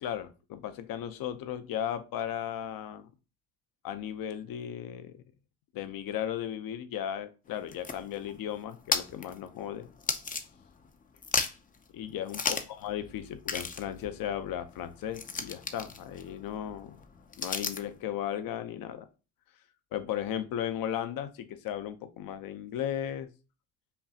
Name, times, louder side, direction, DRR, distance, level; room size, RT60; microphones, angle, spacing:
voice 1, 0.0-3.1 3.8-5.2 5.7-9.9 11.9-17.0 17.4-19.1 19.9-23.3, left 10 dB, 55° left, 11 dB, 0.7 m, -36 dB
sound 1, 7.5-10.9 11.2-11.8 12.3-12.8 13.1-13.2 13.4-18.0, left 5 dB, 20° left, 0.5 m, -35 dB
5.4 x 2.3 x 2.7 m, 0.32 s
supercardioid pair, 75°, 41 cm